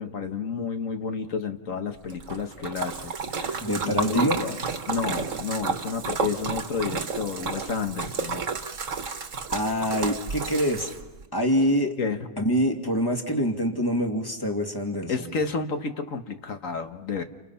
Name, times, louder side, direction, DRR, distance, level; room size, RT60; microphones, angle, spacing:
voice 1, 0.0-4.6 4.9-8.4 8.9-9.0 12.0-12.3 15.1-17.2, left 5 dB, 60° left, 7 dB, 1.7 m, -31 dB
Splash splatter, 2.1-11.2, right 5 dB, 60° right, 1.7 m, -31 dB
voice 2, 3.6-4.5 9.5-10.9 11.3-12.0 12.4-15.3, equal, 15° left, 3 dB, 2.2 m, -25 dB
30.0 x 29.5 x 5.8 m, 1.1 s
omnidirectional pair, 1.5 m